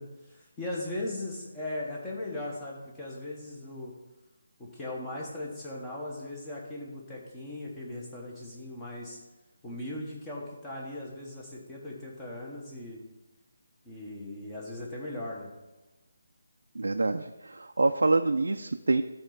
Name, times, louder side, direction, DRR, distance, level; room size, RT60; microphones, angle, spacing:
voice 1, 0.0-3.9 4.6-9.2 9.6-13.0 13.8-15.5, left 1 dB, 10° left, -4 dB, 1.2 m, -38 dB
voice 2, 16.7-19.0, right 3 dB, 90° right, 5 dB, 0.4 m, -26 dB
12.5 x 4.4 x 4.0 m, 1.1 s
hypercardioid pair, 170°, 0 cm